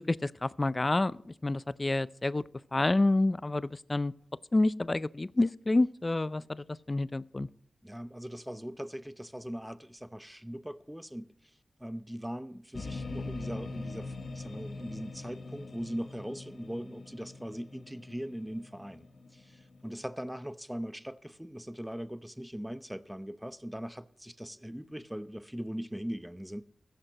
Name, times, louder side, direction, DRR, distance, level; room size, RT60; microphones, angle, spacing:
voice 1, 0.1-2.4 2.7-4.1 4.5-7.5, left 2 dB, 30° left, 0.4 m, -28 dB
voice 2, 7.8-19.1 19.3-26.6, equal, 5° right, 0.7 m, -40 dB
sound 1, 12.7-20.0, left 3 dB, 65° left, 1.4 m, -43 dB
15.0 x 14.5 x 3.0 m
cardioid pair, 60°, 0 cm